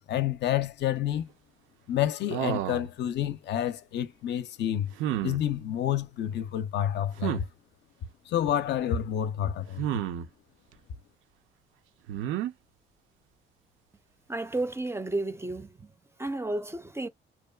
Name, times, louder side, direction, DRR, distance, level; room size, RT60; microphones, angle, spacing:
voice 1, 0.1-1.3 1.9-4.9 5.2-7.5 8.3-10.0, left 11 dB, 60° left, 0.4 m, -29 dB
sound 1, 2.3-2.9 5.0-5.4 7.2-7.4 9.8-10.3 12.1-12.5, right 11 dB, 85° right, 0.5 m, -30 dB
voice 2, 14.3-15.9 16.2-17.1, right 2 dB, 15° right, 0.4 m, -32 dB
2.7 x 2.2 x 2.2 m
cardioid pair, 90°, 20 cm